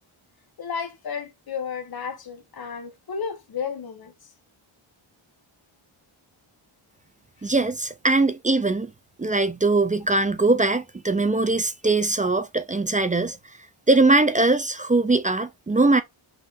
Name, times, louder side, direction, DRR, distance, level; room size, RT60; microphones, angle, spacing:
voice 1, 0.6-4.1, left 6 dB, 45° left, 1.2 m, -32 dB
voice 2, 7.4-8.9 9.2-13.4 13.9-16.0, right 2 dB, 20° right, 0.3 m, -21 dB
5.4 x 2.6 x 3.6 m
wide cardioid pair, 155°, 49 cm